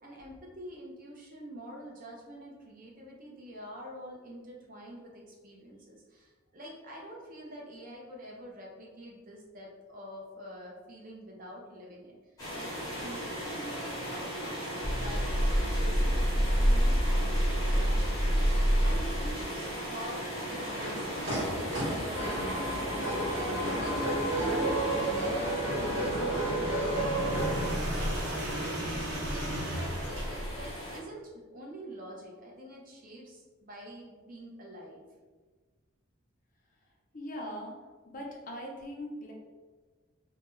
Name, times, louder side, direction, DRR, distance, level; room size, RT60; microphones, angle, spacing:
voice 1, 0.0-12.1 12.5-14.7 15.0-20.2 20.5-28.3 28.6-35.0, equal, 40° right, -2 dB, 0.5 m, -47 dB
sound 1, 12.4-31.0, equal, 15° left, 0.9 m, -38 dB
sound 2, 14.8-19.4 20.9-30.8, equal, 80° right, 0.7 m, -30 dB
sound 3, 20.2-27.6, right 1 dB, 60° right, 1.1 m, -32 dB
voice 2, 37.1-37.7 38.0-39.3, equal, 40° left, -1 dB, 0.5 m, -40 dB
2.2 x 2.2 x 3.0 m, 1.4 s
head